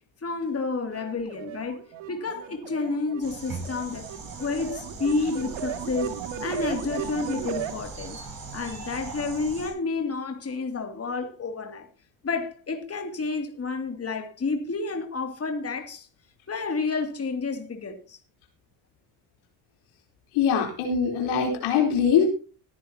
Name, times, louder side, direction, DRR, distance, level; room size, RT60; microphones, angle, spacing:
voice 1, 0.2-4.1 4.4-8.2 8.5-11.9 12.2-16.1 16.5-18.2, left 4 dB, 30° left, 2.5 m, -30 dB
sound 1, 0.8-7.7, right 9 dB, 70° right, 2.2 m, -36 dB
sound 2, 3.2-9.7, right 3 dB, 45° right, 6.2 m, -40 dB
voice 2, 20.3-22.3, left 7 dB, 80° left, 3.9 m, -22 dB
20.5 x 10.0 x 2.8 m
supercardioid pair, 65°, 48 cm